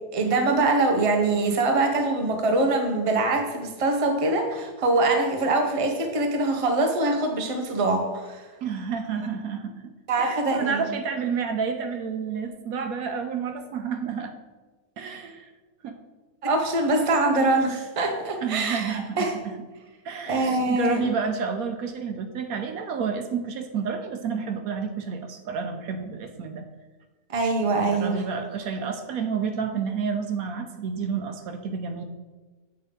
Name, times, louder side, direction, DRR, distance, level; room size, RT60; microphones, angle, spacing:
voice 1, 0.1-8.4 10.1-10.9 16.4-19.3 20.3-21.1 27.3-28.2, right 2 dB, 35° right, 3 dB, 0.6 m, -23 dB
voice 2, 8.6-9.9 10.2-14.3 15.0-15.5 15.8-16.0 18.4-19.3 19.5-19.6 20.0-26.6 27.7-32.0, right 6 dB, 70° right, 7 dB, 1.0 m, -30 dB
8.2 x 3.4 x 5.0 m, 1.3 s
omnidirectional pair, 1.7 m